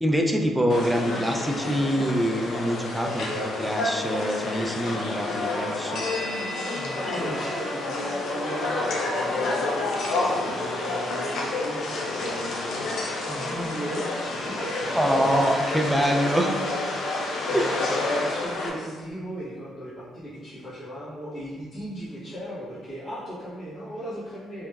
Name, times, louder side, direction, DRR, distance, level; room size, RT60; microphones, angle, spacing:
voice 1, 0.0-6.0 7.1-7.3 14.9-16.6 17.5-17.7, equal, 5° right, 2 dB, 0.3 m, -25 dB
sound 1, 0.7-18.7, left 2 dB, 70° left, 0.5 m, -29 dB
voice 2, 6.0-6.3 6.7-15.4 17.5-24.7, equal, 35° left, -12 dB, 1.3 m, -37 dB
3.3 x 3.0 x 2.3 m, 1.5 s
cardioid pair, 115°, 0 cm